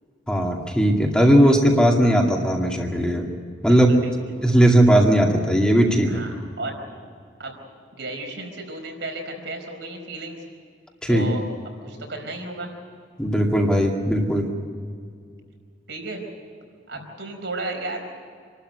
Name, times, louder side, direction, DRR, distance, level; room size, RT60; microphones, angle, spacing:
voice 1, 0.3-3.3 3.6-3.9 4.4-6.2 11.0-11.4 13.2-14.5, equal, 5° left, 0 dB, 2.3 m, -18 dB
voice 2, 3.7-4.4 6.0-6.8 7.4-7.6 7.9-10.5 11.1-11.4 11.8-12.7 15.9-16.2 16.9-18.1, right 2 dB, 70° right, 3 dB, 4.6 m, -34 dB
26.5 x 12.5 x 9.5 m, 2.2 s
head